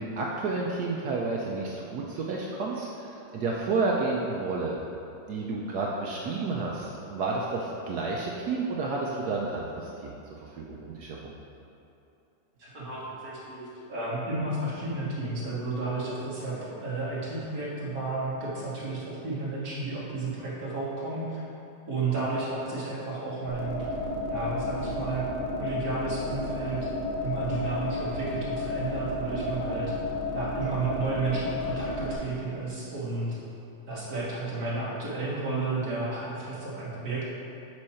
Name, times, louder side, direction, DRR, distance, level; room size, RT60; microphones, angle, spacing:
voice 1, 0.0-4.8 5.3-11.4, right 3 dB, 70° right, -2 dB, 1.0 m, -31 dB
voice 2, 12.6-21.5 21.9-24.0 24.3-25.3 25.6-26.9 27.2-29.9 30.3-33.4 33.9-37.2, right 3 dB, 50° right, -7 dB, 1.9 m, -32 dB
sound 1, 23.5-32.1, left 2 dB, 85° left, 1.6 m, -32 dB
6.3 x 5.2 x 4.3 m, 2.8 s
omnidirectional pair, 2.1 m